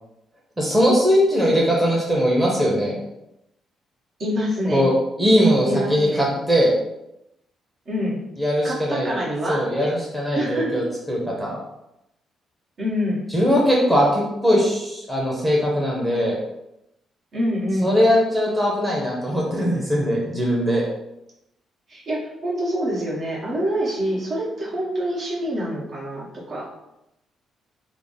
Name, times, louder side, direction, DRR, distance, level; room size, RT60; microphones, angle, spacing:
voice 1, 0.6-3.0 4.7-4.9 5.2-6.7 8.4-9.1 9.5-11.6 13.3-16.4 17.8-20.8, equal, 10° right, -4 dB, 0.9 m, -20 dB
voice 2, 4.2-4.9 5.6-6.3 7.9-8.2 8.6-9.9 10.3-11.0 12.8-13.3 17.3-18.0 21.9-26.7, equal, 55° right, -6 dB, 1.3 m, -26 dB
3.4 x 2.1 x 3.7 m, 0.87 s
cardioid pair, 90°, 0 cm